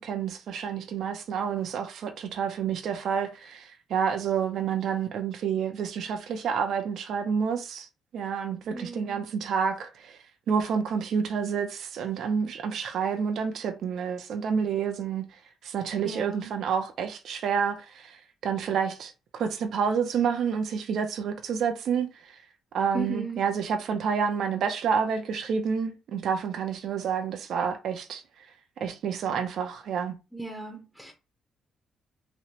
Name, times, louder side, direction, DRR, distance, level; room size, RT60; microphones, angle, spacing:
voice 1, 0.0-7.9 8.1-10.2 10.5-22.4 22.7-28.2 28.8-30.2, right 6 dB, 70° right, 0.6 m, -29 dB
voice 2, 8.7-9.3 16.0-16.5 22.9-23.4 30.3-31.1, right 2 dB, 5° left, 0.8 m, -36 dB
3.1 x 2.9 x 2.9 m
cardioid pair, 90°, 0 cm